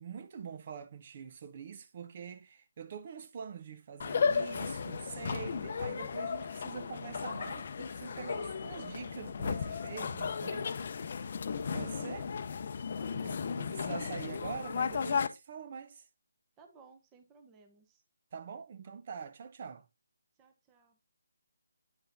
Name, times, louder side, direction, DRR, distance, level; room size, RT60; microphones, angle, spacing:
voice 1, 0.0-10.7 11.7-12.3 13.1-16.0 18.3-19.9, right 6 dB, 40° right, 0.7 m, -44 dB
sound 1, 4.0-15.3, left 6 dB, 45° left, 0.6 m, -35 dB
voice 2, 11.5-12.3 12.9-13.6 16.6-18.0 20.4-21.0, right 4 dB, 15° right, 0.9 m, -59 dB
8.9 x 4.8 x 2.6 m
figure-of-eight pair, 155°, 0 cm